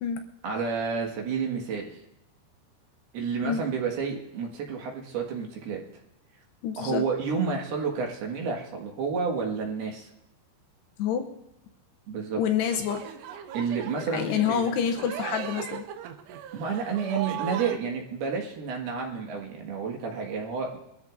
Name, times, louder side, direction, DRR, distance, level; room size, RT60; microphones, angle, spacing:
voice 1, 0.4-1.9 3.1-5.8 6.8-10.1 12.1-12.4 13.5-14.6 16.5-20.8, right 5 dB, 65° right, 1 dB, 3.2 m, -30 dB
voice 2, 6.6-7.0 11.0-11.3 12.4-13.0 14.1-15.8, left 8 dB, 75° left, 5 dB, 2.6 m, -27 dB
sound 1, 12.6-17.8, right 10 dB, 85° right, 3.3 m, -37 dB
24.0 x 13.5 x 2.5 m, 0.83 s
omnidirectional pair, 5.4 m